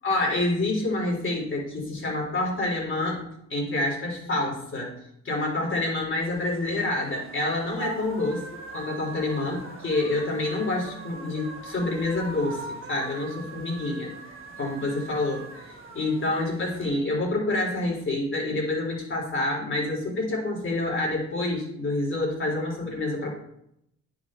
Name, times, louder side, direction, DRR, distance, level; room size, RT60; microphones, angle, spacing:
voice 1, 0.0-3.2 3.5-5.0 5.2-8.5 8.7-14.1 14.6-23.3, left 2 dB, 40° left, -2 dB, 3.6 m, -27 dB
sound 1, 6.3-16.9, right 3 dB, 45° right, 1.3 m, -41 dB
9.6 x 5.6 x 3.7 m, 0.77 s
cardioid pair, 90°, 30 cm